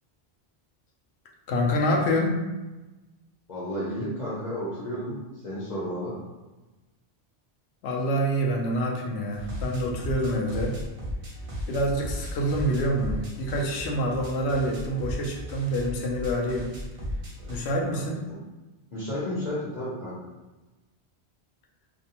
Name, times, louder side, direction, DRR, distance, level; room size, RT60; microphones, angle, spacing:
voice 1, 1.5-2.4 7.8-10.8 11.7-16.7 17.5-18.2, equal, 80° left, -1 dB, 0.8 m, -26 dB
voice 2, 3.5-5.2 5.4-6.2 17.7-18.0 18.3-18.4 18.9-20.2, equal, 45° left, -9 dB, 0.8 m, -32 dB
sound 1, 9.3-17.7, equal, 45° right, 0.5 m, -36 dB
2.6 x 2.1 x 2.7 m, 1.1 s
omnidirectional pair, 1.1 m